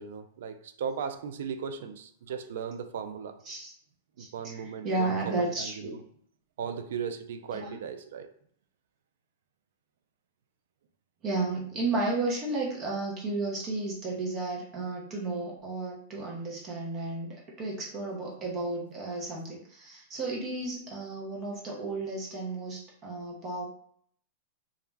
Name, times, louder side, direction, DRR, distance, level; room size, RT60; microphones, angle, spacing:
voice 1, 0.0-3.4 4.2-6.0 6.6-8.3, right 7 dB, 70° right, 0.3 m, -37 dB
voice 2, 4.2-6.0 7.5-7.8 11.2-23.7, right 2 dB, 30° right, 0.6 m, -33 dB
2.3 x 2.1 x 3.2 m
supercardioid pair, 155°, 0 cm